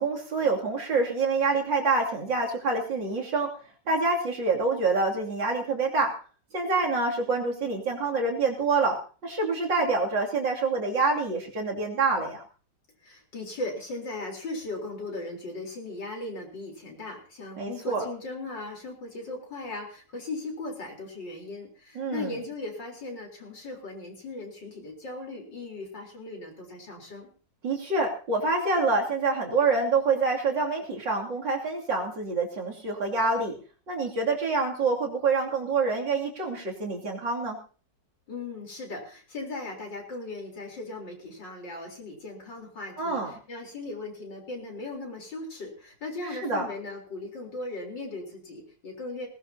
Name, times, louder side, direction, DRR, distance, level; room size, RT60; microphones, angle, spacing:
voice 1, 0.0-3.5 3.9-6.1 6.5-9.0 9.2-12.4 17.6-18.1 22.0-22.4 27.6-33.5 33.9-37.6 43.0-43.3 46.2-46.7, right 3 dB, 85° right, -1 dB, 3.6 m, -26 dB
voice 2, 13.0-27.3 38.3-49.3, left 2 dB, 80° left, 0 dB, 4.7 m, -38 dB
19.0 x 18.5 x 2.9 m, 0.39 s
omnidirectional pair, 1.9 m